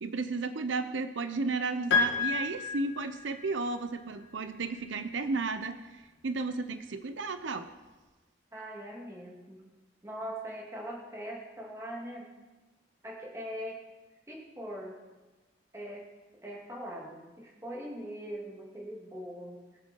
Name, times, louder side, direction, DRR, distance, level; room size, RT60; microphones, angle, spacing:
voice 1, 0.0-5.8 6.2-7.7, right 3 dB, 90° right, 9 dB, 0.7 m, -33 dB
Piano, 1.9-3.6, left 4 dB, 70° left, 2.4 m, -30 dB
voice 2, 8.5-9.6 10.0-12.3 13.0-13.8 14.3-15.0 15.7-16.1 16.4-19.6, equal, 15° right, -2 dB, 2.5 m, -41 dB
20.5 x 7.7 x 4.6 m, 1.2 s
head